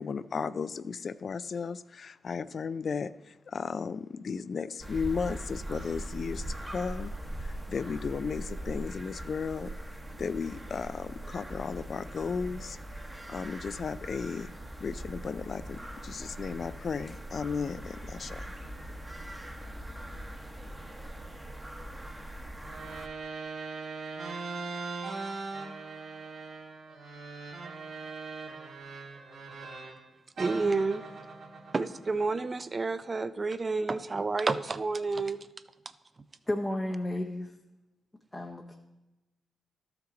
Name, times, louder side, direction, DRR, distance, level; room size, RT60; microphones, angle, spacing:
voice 1, 0.0-3.1 3.5-7.1 7.4-9.7 10.2-12.8 13.3-14.5 14.8-18.4, left 5 dB, 55° left, 16 dB, 0.3 m, -35 dB
sound 1, 4.8-23.1, right 1 dB, 10° right, 1.0 m, -41 dB
sound 2, 22.6-30.0 30.4-32.8, right 4 dB, 75° right, 1.7 m, -40 dB
voice 2, 30.4-31.0 31.7-35.5, right 3 dB, 35° right, 13 dB, 0.4 m, -30 dB
voice 3, 36.5-37.5 38.3-38.8, left 1 dB, 15° left, 1 dB, 0.7 m, -32 dB
12.5 x 5.8 x 3.8 m, 1.0 s
cardioid pair, 75°, 0 cm